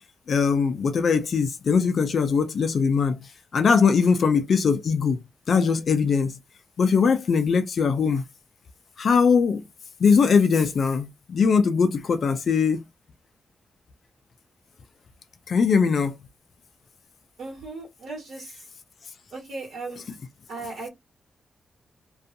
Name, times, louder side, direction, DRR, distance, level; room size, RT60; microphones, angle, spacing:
voice 1, 0.3-6.4 6.8-8.2 9.0-9.6 10.0-12.8 15.5-16.2, left 5 dB, 50° left, 0.3 m, -21 dB
voice 2, 17.4-18.5 19.3-20.0 20.5-20.9, right 3 dB, 65° right, 1.4 m, -36 dB
2.5 x 2.3 x 2.5 m
wide cardioid pair, 175°, 0 cm